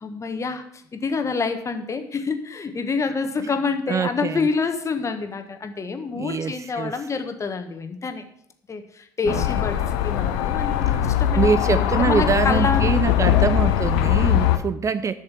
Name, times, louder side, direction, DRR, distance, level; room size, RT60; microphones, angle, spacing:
voice 1, 0.0-8.2 8.7-11.5 11.7-13.0, left 4 dB, 30° left, 7 dB, 1.7 m, -27 dB
voice 2, 3.9-4.5 6.1-7.1 9.2-9.5 10.9-11.1 11.4-15.1, right 6 dB, 30° right, 13 dB, 0.6 m, -24 dB
sound 1, 9.3-14.6, left 11 dB, 65° left, 0.8 m, -21 dB
11.5 x 6.6 x 7.5 m, 0.67 s
figure-of-eight pair, 55°, 10 cm